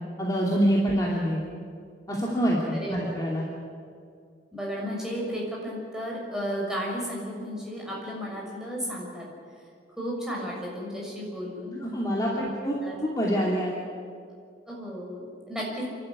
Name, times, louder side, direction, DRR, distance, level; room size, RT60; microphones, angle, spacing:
voice 1, 0.2-1.4 2.1-3.4 11.8-13.7, equal, 20° left, -4 dB, 2.7 m, -26 dB
voice 2, 2.7-3.1 4.5-9.3 10.0-11.8 12.3-12.5 12.8-13.0 14.7-15.8, equal, 5° right, -4 dB, 6.5 m, -33 dB
29.5 x 12.0 x 9.9 m, 2.3 s
head